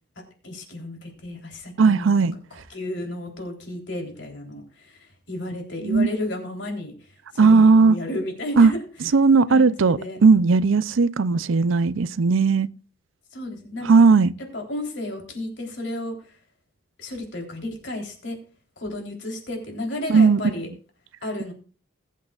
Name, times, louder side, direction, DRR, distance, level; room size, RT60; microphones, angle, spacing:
voice 1, 0.4-2.1 2.5-8.8 9.5-10.2 13.3-14.0 14.5-16.4 17.0-18.4 18.8-20.7 21.2-21.5, left 1 dB, 65° left, 3.6 m, -33 dB
voice 2, 1.8-2.3 5.8-6.1 7.4-8.0 8.6-8.7 9.1-12.7 13.9-14.3 20.1-20.4, right 4 dB, 85° right, 0.5 m, -17 dB
20.5 x 8.4 x 2.4 m
head